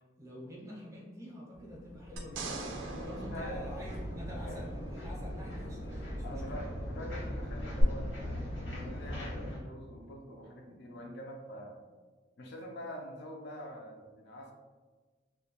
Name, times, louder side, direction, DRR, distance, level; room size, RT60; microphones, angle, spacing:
voice 1, 0.2-2.5 3.0-6.6, equal, 15° right, -4 dB, 0.5 m, -47 dB
sound 1, 1.5-9.6, equal, 85° left, 0.9 m, -40 dB
sound 2, 2.2-4.7 7.8-7.9, right 3 dB, 85° right, 0.4 m, -42 dB
voice 2, 2.8-3.6 4.3-4.6 6.2-11.8 12.4-14.5, equal, 60° left, 0 dB, 0.4 m, -45 dB
2.3 x 2.1 x 2.7 m, 1.4 s
head